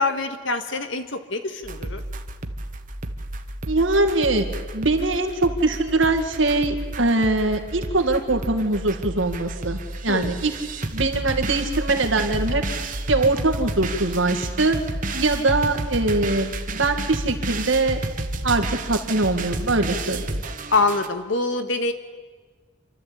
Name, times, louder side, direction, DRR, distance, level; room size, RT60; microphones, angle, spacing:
voice 1, 0.0-2.0 10.1-10.3 20.7-21.9, left 3 dB, 75° left, 8 dB, 1.6 m, -24 dB
sound 1, 1.6-21.1, right 2 dB, 40° right, 1.2 m, -31 dB
voice 2, 3.7-4.5 4.7-10.5 10.9-12.6 13.1-14.8 15.1-18.0 18.4-20.4, right 2 dB, 80° right, 5 dB, 2.1 m, -22 dB
27.5 x 13.0 x 8.6 m, 1.5 s
head